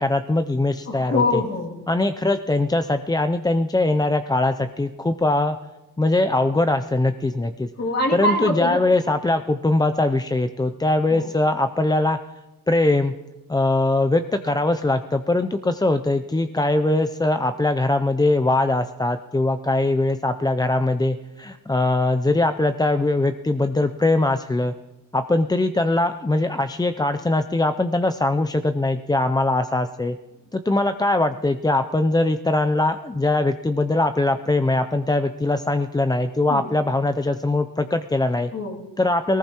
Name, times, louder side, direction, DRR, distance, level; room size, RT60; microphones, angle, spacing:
voice 1, 0.0-1.4 1.9-5.6 6.0-7.7 8.1-12.2 12.7-13.1 13.5-24.7 25.1-30.2 30.5-38.5 39.0-39.4, left 2 dB, 10° left, 8 dB, 0.4 m, -21 dB
voice 2, 0.9-1.8 7.8-8.8 11.1-11.3 36.5-36.7 38.5-38.8, left 2 dB, 50° left, -1 dB, 2.5 m, -24 dB
19.0 x 19.0 x 3.0 m, 1.1 s
cardioid pair, 95°, 34 cm